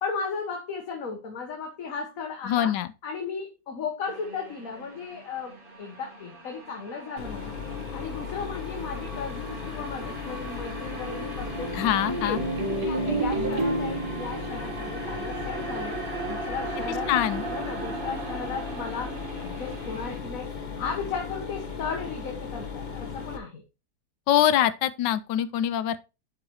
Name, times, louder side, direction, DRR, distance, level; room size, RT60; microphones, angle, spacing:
voice 1, 0.0-2.8 3.0-7.5 7.9-11.7 12.2-16.0 16.2-17.1 17.5-20.5 20.8-23.6, left 5 dB, 55° left, 1.5 m, -35 dB
voice 2, 2.5-2.9 11.7-12.4 17.1-17.4 24.3-26.0, left 11 dB, 90° left, 1.3 m, -24 dB
sound 1, 4.1-20.2, right 3 dB, 30° right, 1.5 m, -39 dB
Mechanisms, 7.2-23.4, left 6 dB, 30° left, 1.0 m, -36 dB
sound 2, 10.3-15.7, right 2 dB, 65° right, 2.1 m, -31 dB
11.5 x 4.8 x 3.0 m
omnidirectional pair, 1.9 m